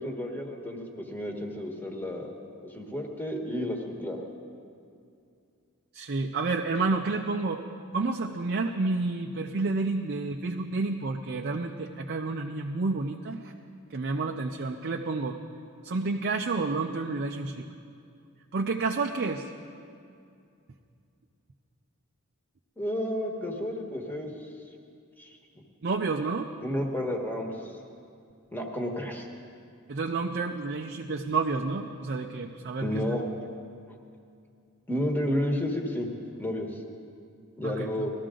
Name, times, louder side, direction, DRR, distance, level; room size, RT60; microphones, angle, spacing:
voice 1, 0.0-2.3 2.6-4.2 22.8-24.3 25.2-25.4 26.6-27.7 28.5-29.3 32.8-33.2 33.9-34.0 34.9-36.1 36.4-36.8 37.6-38.1, left 1 dB, 10° left, 1 dB, 1.4 m, -31 dB
voice 2, 5.9-7.6 7.9-13.5 13.9-15.4 15.8-17.6 18.5-19.5 25.8-26.5 29.9-33.2 37.6-38.0, right 3 dB, 50° right, 2 dB, 0.5 m, -30 dB
19.5 x 13.5 x 3.8 m, 2.5 s
head